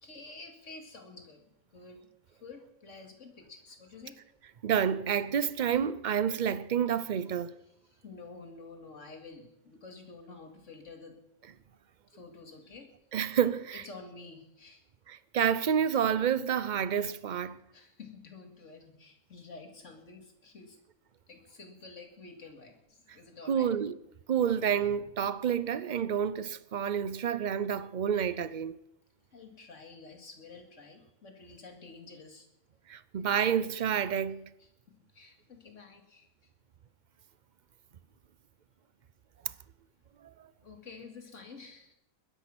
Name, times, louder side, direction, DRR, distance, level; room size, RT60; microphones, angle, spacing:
voice 1, 0.0-4.2 7.8-11.2 12.1-12.9 13.7-14.8 17.3-17.4 17.7-20.8 21.3-23.7 29.3-32.5 34.6-34.7 35.1-36.3 40.6-42.0, left 3 dB, 65° left, 2.5 m, -50 dB
voice 2, 4.6-7.5 13.1-13.8 15.1-17.6 23.5-24.0 24.3-28.8 32.9-34.5 40.2-40.3, right 8 dB, 50° right, 0.6 m, -29 dB
20.5 x 10.5 x 6.0 m
omnidirectional pair, 1.4 m